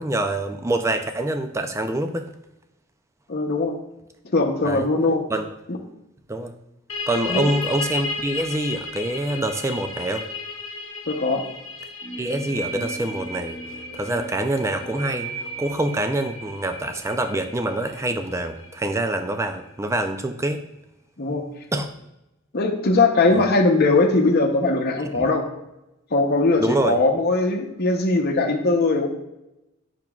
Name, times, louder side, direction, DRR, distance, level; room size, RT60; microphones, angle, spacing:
voice 1, 0.0-2.3 4.6-4.9 5.3-5.5 6.3-6.5 7.1-10.3 12.2-13.6 13.9-15.3 15.6-20.6 21.7-21.9 23.3-23.4 25.0-25.3 26.6-27.0, right 1 dB, 15° right, 7 dB, 0.4 m, -25 dB
voice 2, 3.3-3.8 4.2-5.2 5.7-5.8 7.3-7.5 11.1-11.4 21.2-21.4 22.5-25.4 26.1-29.1, left 3 dB, 50° left, 2 dB, 0.8 m, -20 dB
sound 1, 6.9-18.3, left 4 dB, 70° left, 1.0 m, -34 dB
sound 2, 12.0-19.4, right 2 dB, 20° left, 1.1 m, -37 dB
8.8 x 5.9 x 2.3 m, 0.91 s
head